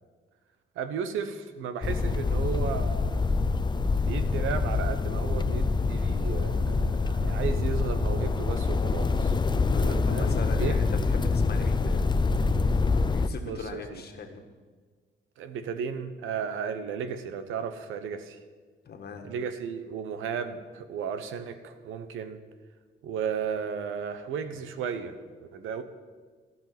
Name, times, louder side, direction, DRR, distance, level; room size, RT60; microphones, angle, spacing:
voice 1, 0.7-3.4 4.0-9.3 9.8-10.8 13.4-14.0 15.4-18.4 19.2-22.4 23.0-25.8, right 7 dB, 85° right, 10 dB, 1.0 m, -34 dB
sound 1, 1.8-13.3, left 4 dB, 20° left, 0.6 m, -26 dB
voice 2, 9.7-12.0 12.9-14.4 18.8-19.3 24.5-24.6, left 4 dB, 55° left, 4 dB, 1.6 m, -40 dB
15.0 x 5.4 x 9.2 m, 1.5 s
cardioid pair, 90°, 20 cm